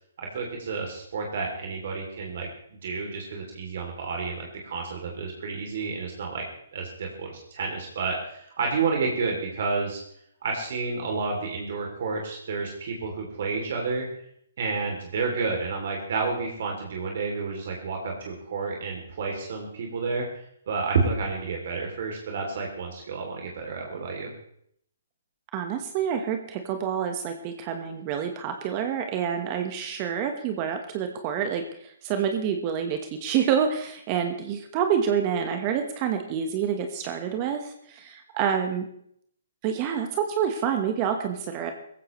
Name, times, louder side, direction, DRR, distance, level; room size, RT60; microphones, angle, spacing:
voice 1, 0.2-2.5 2.8-6.4 6.7-10.0 10.4-14.1 14.6-24.3, right 4 dB, 60° right, 0 dB, 3.0 m, -30 dB
voice 2, 25.5-38.9 39.6-41.7, right 8 dB, 35° right, 6 dB, 1.3 m, -27 dB
19.0 x 15.0 x 3.2 m, 0.69 s
hypercardioid pair, 135°, 0 cm